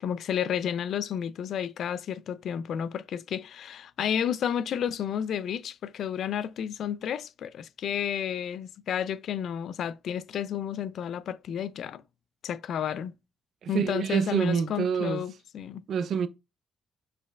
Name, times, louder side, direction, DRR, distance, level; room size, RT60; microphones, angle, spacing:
voice 1, 0.0-12.0 12.4-13.1 13.7-15.8, left 9 dB, 70° left, 0.3 m, -31 dB
voice 2, 13.6-15.2 15.9-16.3, right 7 dB, 65° right, 0.5 m, -26 dB
5.0 x 4.4 x 2.3 m
cardioid pair, 90°, 0 cm